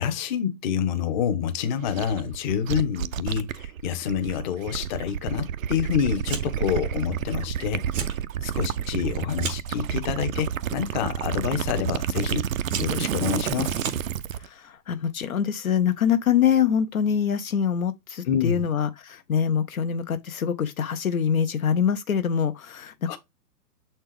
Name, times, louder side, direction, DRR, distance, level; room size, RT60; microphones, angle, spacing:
voice 1, 0.0-8.1 8.4-12.5 12.8-13.8 18.2-18.7 23.1-23.2, left 8 dB, 30° left, 0.9 m, -27 dB
Gurgling / Liquid, 1.9-14.5, right 9 dB, 55° right, 0.5 m, -30 dB
Fire, 6.2-6.7 7.0-7.5 7.8-8.2 8.6-9.8 10.5-10.9 11.8-11.9 12.4-14.4, right 6 dB, 10° right, 0.6 m, -36 dB
voice 2, 14.5-23.2, left 8 dB, 60° left, 0.8 m, -24 dB
6.9 x 4.3 x 3.3 m
figure-of-eight pair, 125°, 48 cm